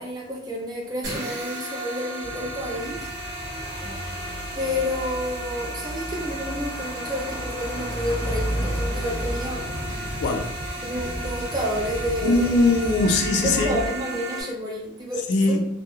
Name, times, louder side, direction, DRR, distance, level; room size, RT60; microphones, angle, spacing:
voice 1, 0.0-3.1 4.5-9.7 10.8-12.5 13.4-15.6, equal, 20° right, -2 dB, 0.5 m, -30 dB
sound 1, 1.0-14.4, right 1 dB, 70° right, 0.9 m, -35 dB
sound 2, 2.2-10.2, equal, 40° left, 0.8 m, -33 dB
sound 3, 8.3-13.9, equal, 10° left, 1.0 m, -35 dB
voice 2, 10.2-10.5 12.2-13.8 15.3-15.6, left 2 dB, 60° left, 4 dB, 0.3 m, -21 dB
2.3 x 2.1 x 2.9 m, 0.77 s
head